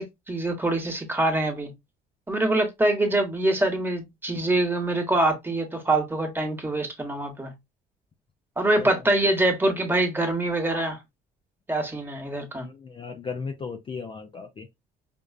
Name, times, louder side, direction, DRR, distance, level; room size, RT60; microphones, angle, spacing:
voice 1, 0.0-1.7 2.3-7.5 8.6-11.0 11.7-12.7, right 2 dB, 10° right, 1.1 m, -24 dB
voice 2, 12.6-14.7, left 5 dB, 30° left, 0.5 m, -36 dB
5.2 x 2.3 x 2.3 m
cardioid pair, 110°, 17 cm